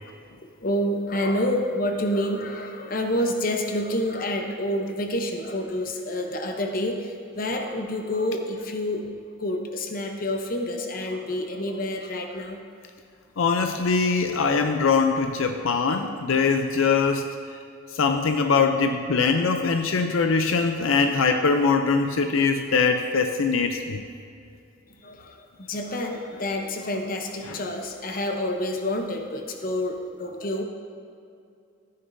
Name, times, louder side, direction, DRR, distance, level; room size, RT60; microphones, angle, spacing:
voice 1, 0.6-9.1 9.4-12.6 25.0-30.6, left 1 dB, 45° left, 4 dB, 0.8 m, -28 dB
voice 2, 13.4-17.3 17.9-24.0, left 5 dB, 80° left, 6 dB, 0.5 m, -22 dB
14.0 x 9.5 x 2.7 m, 2.5 s
head